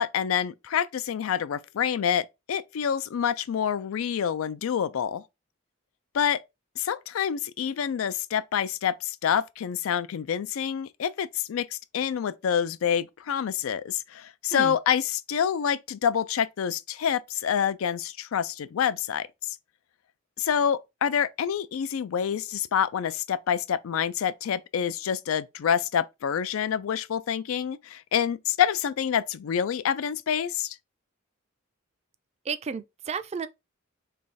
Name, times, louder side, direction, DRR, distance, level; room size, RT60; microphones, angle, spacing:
voice 1, 0.0-5.2 6.1-6.4 6.8-19.6 20.4-30.8, left 8 dB, 90° left, 0.4 m, -27 dB
voice 2, 32.5-33.5, right 6 dB, 30° right, 0.3 m, -32 dB
3.3 x 3.1 x 4.0 m
head